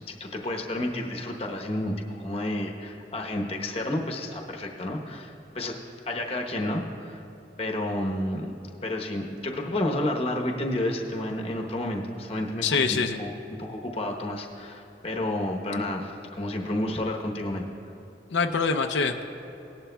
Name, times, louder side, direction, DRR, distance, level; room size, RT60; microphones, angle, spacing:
voice 1, 0.1-5.8 6.1-7.2 7.6-8.5 8.8-13.3 13.6-17.6, left 1 dB, 35° left, 1 dB, 0.9 m, -30 dB
voice 2, 12.6-13.2 18.3-19.2, left 5 dB, 90° left, 5 dB, 0.5 m, -24 dB
18.0 x 11.0 x 2.3 m, 2.9 s
head